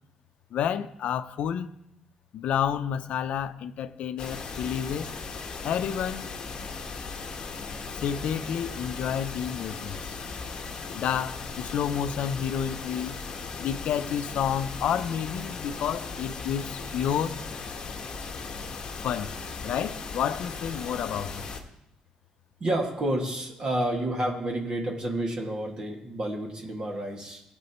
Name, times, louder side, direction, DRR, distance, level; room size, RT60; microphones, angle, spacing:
voice 1, 0.5-1.7 2.3-5.1 5.6-6.3 7.9-10.2 10.9-13.2 13.6-17.4 19.0-19.4 19.6-21.5, left 8 dB, 65° left, 0.6 m, -30 dB
White Noise, 4.2-21.6, left 4 dB, 35° left, 1.3 m, -37 dB
voice 2, 22.6-27.4, right 1 dB, 35° right, 2.0 m, -30 dB
19.0 x 8.9 x 3.1 m
cardioid pair, 145°, 2 cm